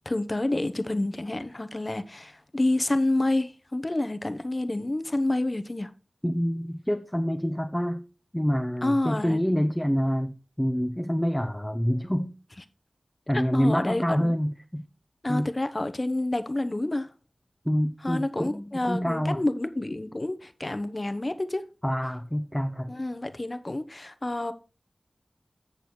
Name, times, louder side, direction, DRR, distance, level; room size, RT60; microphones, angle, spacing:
voice 1, 0.0-5.9 8.8-9.4 13.3-14.3 15.2-17.1 18.0-21.6 22.9-24.5, left 2 dB, 35° left, 1.0 m, -28 dB
voice 2, 6.2-8.0 8.3-12.3 13.3-14.8 15.3-15.5 17.7-19.4 21.8-22.9, equal, 10° left, 0.7 m, -27 dB
8.3 x 6.8 x 4.3 m
wide cardioid pair, 50°, 0 cm